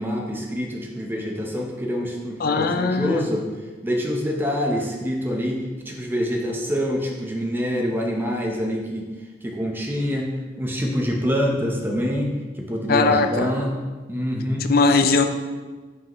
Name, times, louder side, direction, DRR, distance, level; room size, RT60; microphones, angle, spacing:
voice 1, 0.0-3.5 3.8-9.1 9.4-10.3 10.6-13.8 14.1-14.7, equal, 10° right, 0 dB, 0.8 m, -26 dB
voice 2, 2.4-3.3 12.9-13.5 14.7-15.3, left 4 dB, 60° left, 7 dB, 0.5 m, -19 dB
9.5 x 4.8 x 3.0 m, 1.3 s
head